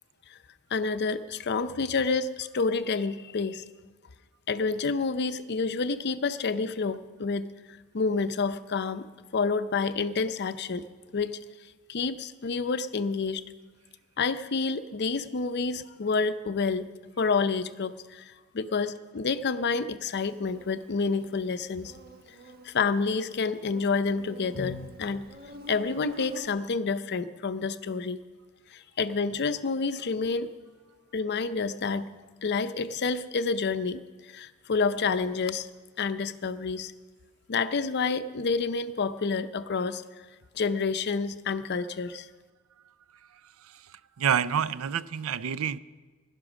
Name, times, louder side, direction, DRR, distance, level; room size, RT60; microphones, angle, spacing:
voice 1, 0.7-3.6 4.5-7.5 7.9-9.1 9.3-10.9 11.1-11.4 11.9-13.4 14.2-16.9 17.2-21.9 22.6-25.2 25.7-28.2 28.7-30.5 31.1-32.1 32.4-35.7 36.0-36.9 37.5-40.0 40.5-42.3, left 4 dB, 55° left, 12 dB, 0.6 m, -29 dB
Insect, 20.2-26.5, right 1 dB, 45° right, 1.3 m, -48 dB
voice 2, 43.6-45.8, right 8 dB, 85° right, 17 dB, 0.5 m, -28 dB
16.0 x 11.0 x 6.2 m, 1.4 s
head